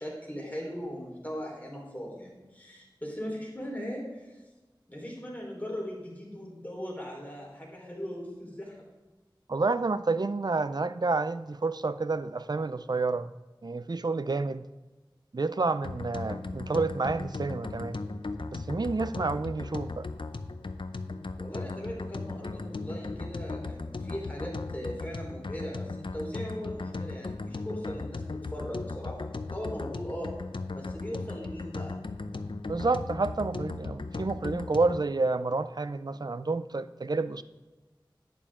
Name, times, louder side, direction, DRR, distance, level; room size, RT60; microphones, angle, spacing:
voice 1, 0.0-4.4 4.9-8.9 21.4-28.2 28.5-30.3 30.7-32.0 32.8-32.9, equal, 20° left, -3 dB, 4.0 m, -39 dB
voice 2, 9.5-13.3 13.6-14.6 15.3-18.0 18.5-20.1 32.7-37.4, right 3 dB, 55° right, 14 dB, 0.4 m, -29 dB
sound 1, 15.8-35.0, left 3 dB, 80° left, 0.6 m, -37 dB
11.5 x 9.2 x 3.7 m, 1.2 s
wide cardioid pair, 45°, 8 cm